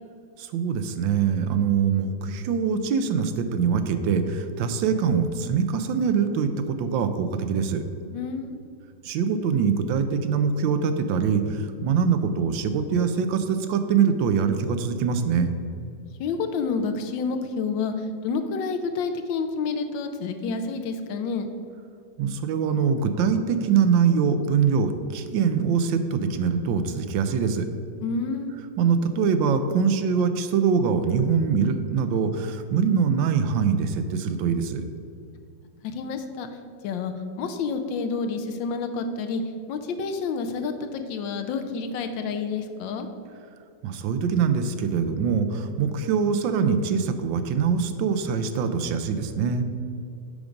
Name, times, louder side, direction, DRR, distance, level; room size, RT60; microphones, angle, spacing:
voice 1, 0.4-7.8 9.0-15.5 22.2-27.7 28.8-34.8 43.8-49.6, right 6 dB, 85° right, 9 dB, 1.3 m, -23 dB
voice 2, 8.1-8.6 16.2-17.9 18.2-21.5 28.0-28.6 35.8-36.5 36.8-39.4 39.7-43.1, left 4 dB, 85° left, 7 dB, 1.4 m, -29 dB
7.0 x 5.2 x 5.0 m, 2.5 s
omnidirectional pair, 2.0 m